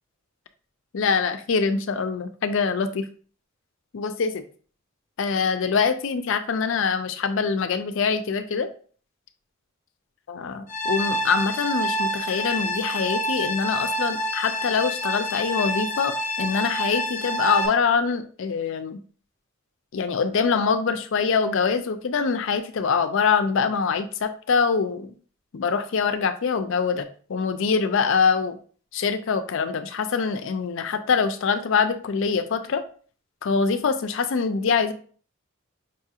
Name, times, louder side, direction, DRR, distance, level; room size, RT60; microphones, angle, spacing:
voice 1, 0.9-3.1 3.9-4.4 5.2-8.7 10.3-19.0 19.9-25.1 25.5-28.6 28.9-32.8 33.4-34.9, left 5 dB, 65° left, 9 dB, 0.4 m, -24 dB
sound 1, 10.7-17.7, equal, 35° left, 0.7 m, -27 dB
5.3 x 2.7 x 2.4 m, 0.42 s
head